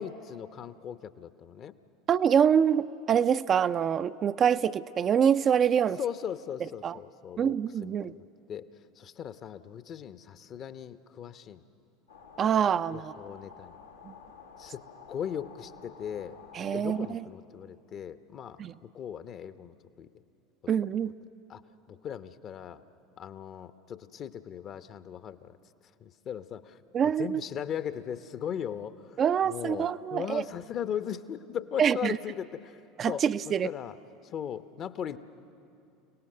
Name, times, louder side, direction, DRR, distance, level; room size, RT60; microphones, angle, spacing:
voice 1, 0.0-1.7 6.0-7.5 7.8-8.2 8.5-8.7 9.0-11.6 12.9-13.8 14.6-14.8 15.1-16.4 16.7-20.1 21.5-21.6 21.9-22.8 23.2-25.6 26.0-32.8 33.1-34.0 34.2-35.2, left 9 dB, 40° left, 12 dB, 0.9 m, -38 dB
voice 2, 2.1-6.0 6.8-6.9 7.4-8.1 12.4-13.1 16.5-17.2 18.6-18.7 20.7-21.1 26.9-27.4 29.2-30.4 31.8-32.2 33.0-33.7, right 8 dB, 35° right, 12 dB, 0.4 m, -25 dB
sound 1, 12.1-17.1, left 6 dB, 85° left, 1.4 m, -51 dB
29.5 x 18.0 x 6.7 m, 2.6 s
figure-of-eight pair, 75°, 0 cm